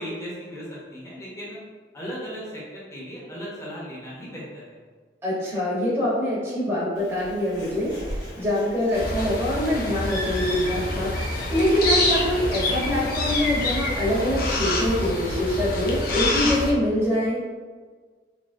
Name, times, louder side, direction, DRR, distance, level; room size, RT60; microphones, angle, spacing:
voice 1, 0.0-1.6 1.9-4.8, equal, 15° left, -6 dB, 0.7 m, -36 dB
voice 2, 5.2-17.4, left 1 dB, 15° right, -9 dB, 0.9 m, -24 dB
Bird, 7.0-12.0, equal, 85° left, 1.5 m, -37 dB
sound 1, 8.9-16.7, left 2 dB, 50° left, 0.5 m, -26 dB
3.6 x 2.8 x 2.6 m, 1.5 s
head